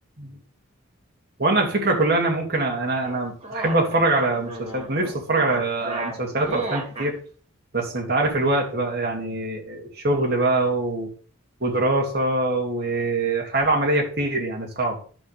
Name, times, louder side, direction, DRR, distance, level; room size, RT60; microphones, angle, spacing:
voice 1, 1.4-7.1 7.7-11.1 11.6-15.0, right 2 dB, 45° right, 0 dB, 2.5 m, -23 dB
sound 1, 3.0-7.1, right 2 dB, 30° right, 2.2 m, -33 dB
10.5 x 3.8 x 6.7 m, 0.41 s
head